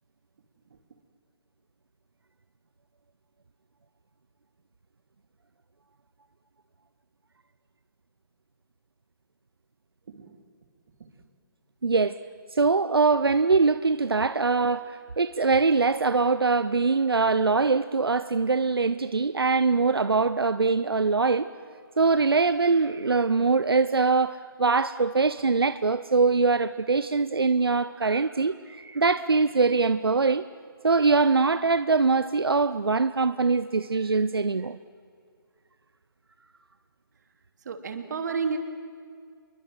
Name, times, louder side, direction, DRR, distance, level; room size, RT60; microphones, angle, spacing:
voice 1, 11.8-12.2 12.5-21.5 22.0-30.5 30.8-34.8, right 4 dB, 85° right, 0.8 m, -23 dB
voice 2, 37.6-38.6, right 5 dB, 50° right, 2.9 m, -31 dB
28.5 x 22.5 x 7.9 m
figure-of-eight pair, 150°, 12 cm